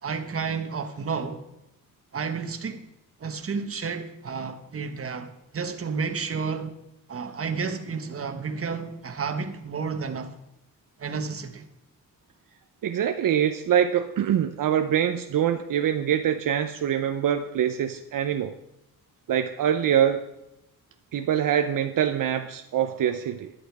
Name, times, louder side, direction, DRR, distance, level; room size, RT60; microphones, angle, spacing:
voice 1, 0.0-1.4 2.1-2.8 3.2-6.7 7.1-10.3 11.0-11.7, right 5 dB, 40° right, 1.4 m, -31 dB
voice 2, 12.8-18.6 19.3-20.3 21.1-23.5, right 9 dB, 70° right, 0.7 m, -24 dB
11.5 x 11.0 x 4.8 m
cardioid pair, 110°, 34 cm